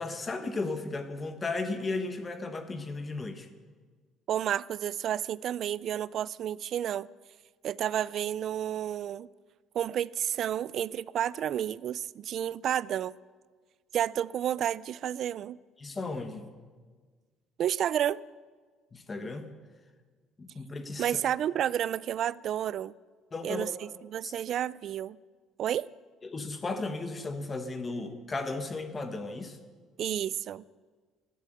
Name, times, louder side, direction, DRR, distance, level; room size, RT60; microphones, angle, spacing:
voice 1, 0.0-3.5 15.8-16.5 18.9-19.5 20.4-21.2 23.3-23.7 24.2-24.3 26.2-29.6, left 3 dB, 20° left, 8 dB, 1.3 m, -35 dB
voice 2, 4.3-7.1 7.6-9.3 9.7-13.1 13.9-15.6 17.6-18.2 21.0-22.9 23.4-25.2 25.6-25.9 30.0-30.6, right 10 dB, 50° right, 21 dB, 0.4 m, -31 dB
13.5 x 11.5 x 7.8 m, 1.5 s
cardioid pair, 140°, 0 cm